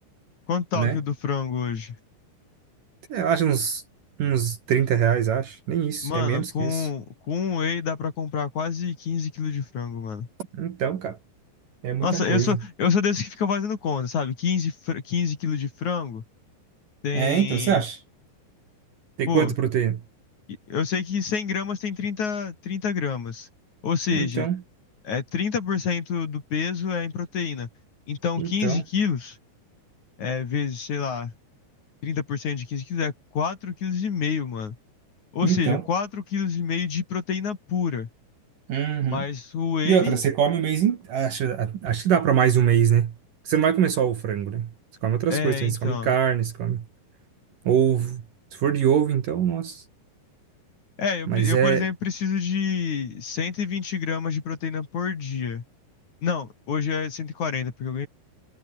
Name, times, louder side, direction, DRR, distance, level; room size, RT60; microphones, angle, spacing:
voice 1, 0.5-2.0 6.0-10.3 12.0-16.2 17.0-17.8 19.3-19.5 20.7-23.5 23.8-24.5 25.0-27.7 28.1-29.4 30.2-31.3 32.0-34.8 35.3-38.1 39.1-40.2 45.3-46.1 51.0-55.6 56.2-58.1, left 6 dB, 45° left, 3.8 m, -27 dB
voice 2, 3.1-3.8 4.2-6.9 10.5-11.2 11.8-12.6 17.1-18.0 19.2-20.0 24.1-24.6 28.4-28.8 35.4-35.8 38.7-39.2 39.8-43.1 43.5-44.7 45.0-46.8 47.7-48.2 48.5-49.8 51.3-51.9, right 9 dB, 55° right, 2.9 m, -23 dB
omnidirectional pair, 5.2 m